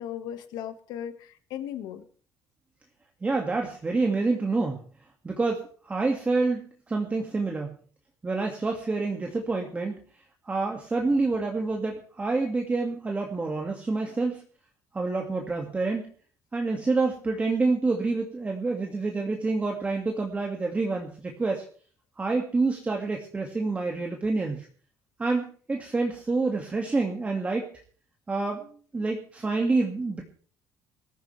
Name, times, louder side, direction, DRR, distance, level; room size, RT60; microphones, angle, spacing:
voice 1, 0.0-2.0, left 10 dB, 80° left, 9 dB, 1.7 m, -37 dB
voice 2, 3.2-4.8 5.2-7.7 8.2-10.0 10.5-14.4 14.9-16.0 16.5-21.6 22.2-24.7 25.2-27.7 28.3-30.2, right 3 dB, 20° right, 1 dB, 2.1 m, -27 dB
21.0 x 14.0 x 3.4 m, 0.43 s
cardioid pair, 125°, 7 cm